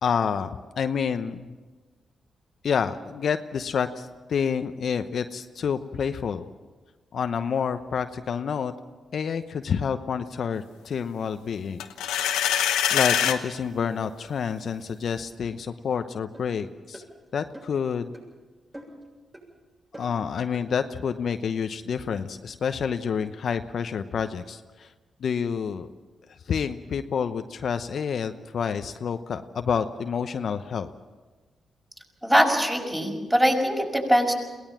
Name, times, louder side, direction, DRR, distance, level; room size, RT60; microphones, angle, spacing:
voice 1, 0.0-1.5 2.6-6.4 7.1-8.7 9.1-12.3 12.9-17.0 17.3-18.1 19.9-24.9 25.2-25.9 26.5-30.9, left 7 dB, 65° left, 9 dB, 0.8 m, -28 dB
sound 1, 11.8-13.4, left 10 dB, 90° left, 1.1 m, -23 dB
sound 2, 16.3-16.5 16.9-17.1 17.5-17.8 18.1-18.3 18.7-19.1 19.3-19.5 19.9-20.2 20.5-20.7, right 1 dB, 25° right, 7.7 m, -44 dB
voice 2, 32.2-34.4, equal, 10° right, 1 dB, 5.9 m, -22 dB
22.5 x 17.5 x 7.4 m, 1.3 s
supercardioid pair, 50°, 0 cm